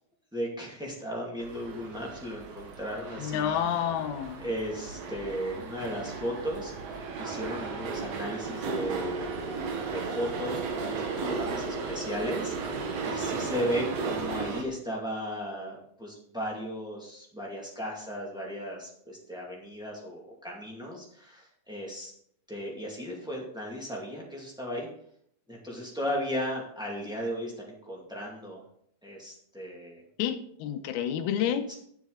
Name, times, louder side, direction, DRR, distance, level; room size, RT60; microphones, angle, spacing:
voice 1, 0.3-3.5 4.4-9.3 9.9-12.5 13.0-22.1 22.5-24.9 25.5-28.6 29.0-30.0 31.7-31.8, equal, 5° right, -4 dB, 0.4 m, -36 dB
sound 1, 1.4-14.6, right 4 dB, 65° right, 1.6 m, -35 dB
voice 2, 3.2-4.4 30.2-31.8, left 9 dB, 80° left, 8 dB, 2.5 m, -29 dB
11.5 x 8.0 x 4.0 m, 0.66 s
omnidirectional pair, 4.7 m